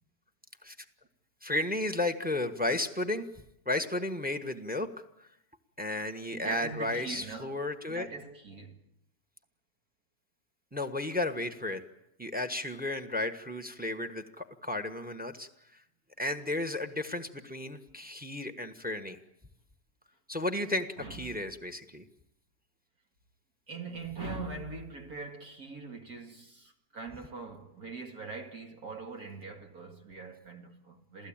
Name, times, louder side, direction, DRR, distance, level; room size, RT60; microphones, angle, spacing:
voice 1, 1.4-5.3 5.8-8.1 10.7-11.8 12.2-15.8 16.2-19.2 20.3-22.0, left 2 dB, 5° right, 1.1 m, -33 dB
voice 2, 6.3-7.6 7.9-8.8 21.0-21.4 23.7-31.3, right 4 dB, 65° right, 2.6 m, -42 dB
27.5 x 16.5 x 8.9 m
omnidirectional pair, 1.8 m